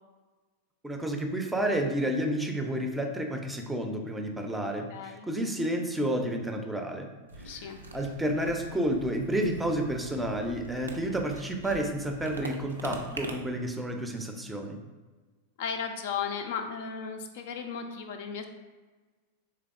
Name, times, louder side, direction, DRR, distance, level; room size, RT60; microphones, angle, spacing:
voice 1, 0.8-7.1 7.4-7.6 7.9-14.8, right 1 dB, 5° right, 3 dB, 0.5 m, -30 dB
voice 2, 4.9-5.3 7.4-7.8 15.6-18.4, left 6 dB, 50° left, 6 dB, 0.3 m, -35 dB
sound 1, 7.3-13.4, right 2 dB, 75° right, 0.4 m, -43 dB
3.9 x 3.3 x 2.4 m, 1.3 s
figure-of-eight pair, 90°, 0 cm